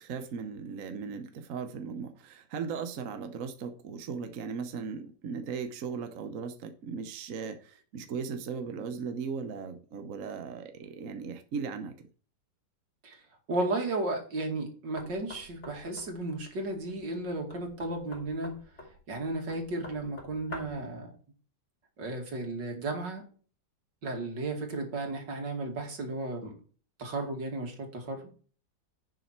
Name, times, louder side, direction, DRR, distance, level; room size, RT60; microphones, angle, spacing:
voice 1, 0.0-12.1, right 5 dB, 55° right, 1.2 m, -37 dB
voice 2, 13.5-18.5 19.1-21.1 22.0-23.2 24.0-26.5 27.0-28.3, right 2 dB, 80° right, 3.0 m, -34 dB
Knock, 15.0-20.9, left 1 dB, 40° left, 3.1 m, -48 dB
11.0 x 6.7 x 4.4 m
omnidirectional pair, 1.9 m